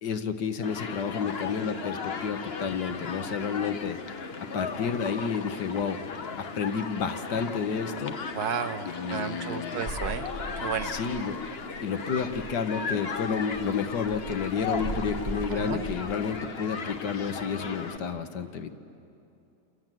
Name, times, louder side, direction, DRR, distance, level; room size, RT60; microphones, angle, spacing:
voice 1, 0.0-4.0 4.4-6.1 6.4-8.2 8.8-9.8 10.8-11.4 11.8-18.8, left 6 dB, 85° left, 8 dB, 1.8 m, -30 dB
Human group actions, 0.6-18.0, left 5 dB, 40° left, 1.1 m, -36 dB
voice 2, 8.3-10.3 10.6-11.0 15.5-15.8, right 7 dB, 70° right, 8 dB, 1.6 m, -33 dB
sound 1, 9.8-11.5 11.7-11.9 12.1-12.6 13.1-16.1, right 2 dB, 35° right, 1.5 m, -39 dB
28.5 x 27.5 x 7.6 m, 2.7 s
omnidirectional pair, 1.8 m